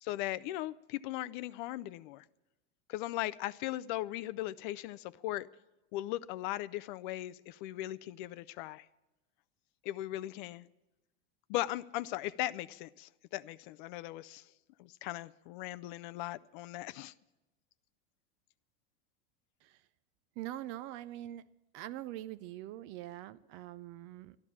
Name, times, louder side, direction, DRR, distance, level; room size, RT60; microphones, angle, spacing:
voice 1, 0.0-2.2 2.9-5.5 5.9-8.9 9.8-10.7 11.5-14.4 14.8-17.1, left 16 dB, 45° left, 0.4 m, -38 dB
voice 2, 20.4-21.5 21.7-24.4, right 14 dB, 35° right, 0.4 m, -43 dB
12.5 x 12.0 x 7.3 m
supercardioid pair, 145°, 34 cm